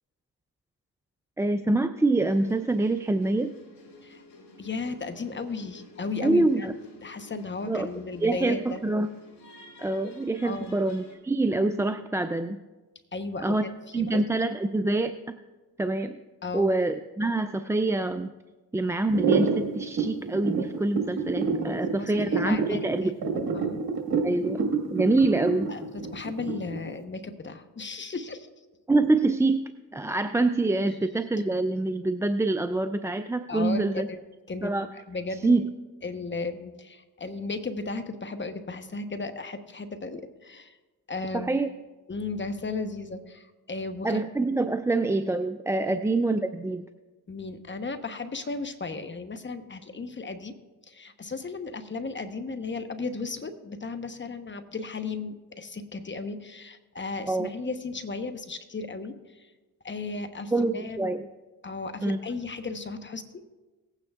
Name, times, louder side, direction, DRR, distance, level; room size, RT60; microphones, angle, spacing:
voice 1, 1.4-3.5 6.2-6.7 7.7-7.9 8.2-9.1 9.8-12.6 13.4-13.6 13.9-15.4 15.8-16.2 16.5-18.3 18.7-23.1 24.2-25.7 28.9-34.1 34.6-34.9 35.4-35.7 41.3-41.7 44.0-46.9 57.3-57.5 60.5-61.3 62.0-62.2, right 2 dB, 10° right, 9 dB, 0.3 m, -25 dB
sound 1, 2.3-11.2, left 3 dB, 65° left, 3.0 m, -51 dB
voice 2, 4.6-6.7 7.0-8.8 10.4-10.8 13.1-14.4 16.4-16.7 21.7-23.8 25.7-28.5 33.5-34.2 34.5-35.6 36.0-40.8 41.1-41.6 42.1-44.2 45.9-46.0 47.3-50.5 50.9-59.5 59.8-61.1 61.6-63.4, left 3 dB, 30° left, 8 dB, 1.0 m, -35 dB
sound 2, 19.1-26.9, right 5 dB, 70° right, 1.7 m, -27 dB
18.5 x 9.0 x 2.4 m, 1.2 s
supercardioid pair, 65°, 39 cm